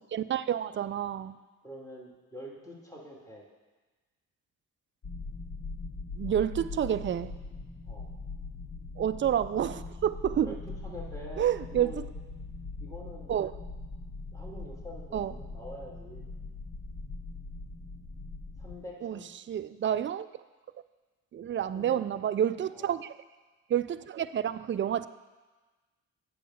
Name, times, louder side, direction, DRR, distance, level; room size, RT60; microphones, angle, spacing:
voice 1, 0.1-1.4 6.2-7.3 9.0-10.5 11.4-11.9 13.3-13.5 15.1-15.3 19.0-19.2 19.5-20.3 21.3-23.1 23.7-25.1, right 10 dB, 35° right, 13 dB, 0.4 m, -29 dB
voice 2, 1.6-3.5 7.9-8.1 10.4-10.5 10.8-12.0 12.8-13.3 14.3-16.3 18.6-19.3 21.7-22.1 22.7-23.0, equal, 10° left, -3 dB, 2.6 m, -45 dB
sound 1, 5.0-18.7, left 3 dB, 55° left, 1.7 m, -41 dB
8.4 x 6.4 x 5.7 m, 1.3 s
supercardioid pair, 60°, 35 cm